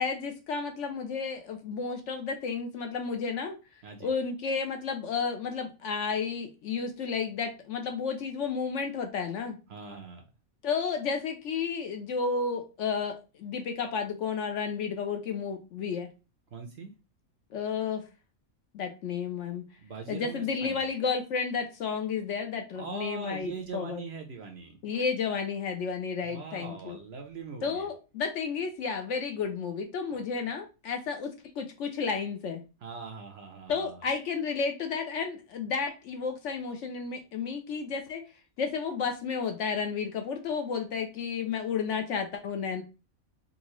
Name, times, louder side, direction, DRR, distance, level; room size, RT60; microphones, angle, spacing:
voice 1, 0.0-3.6 4.0-9.6 10.6-16.1 17.5-18.0 18.7-19.6 20.1-24.0 24.8-27.0 27.6-32.6 33.7-38.2 38.6-42.8, left 5 dB, 65° left, 5 dB, 0.8 m, -32 dB
voice 2, 9.7-10.2 16.5-16.9 19.8-20.9 22.8-24.8 26.2-27.9 32.8-34.0, right 4 dB, 60° right, 4 dB, 0.7 m, -41 dB
3.8 x 2.4 x 3.0 m, 0.30 s
omnidirectional pair, 1.5 m